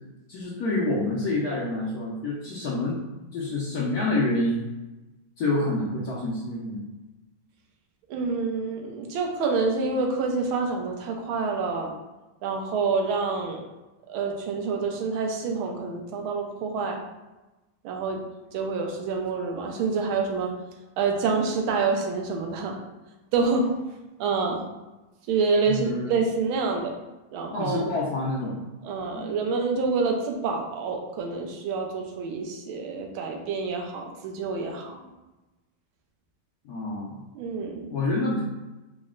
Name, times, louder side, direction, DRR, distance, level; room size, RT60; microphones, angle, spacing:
voice 1, 0.3-3.0 3.3-4.7 5.4-6.9 25.7-26.1 27.5-28.7 29.1-29.3 36.6-37.1 37.9-38.4, left 2 dB, 70° left, -5 dB, 0.9 m, -27 dB
voice 2, 8.1-11.9 12.4-13.6 14.1-17.0 17.8-18.2 18.5-20.5 21.0-22.8 23.3-23.7 24.2-24.6 25.3-26.9 27.3-27.8 28.8-35.0 37.3-37.9, right 4 dB, 90° right, 2 dB, 1.5 m, -27 dB
4.0 x 2.1 x 3.6 m, 1.1 s
omnidirectional pair, 2.2 m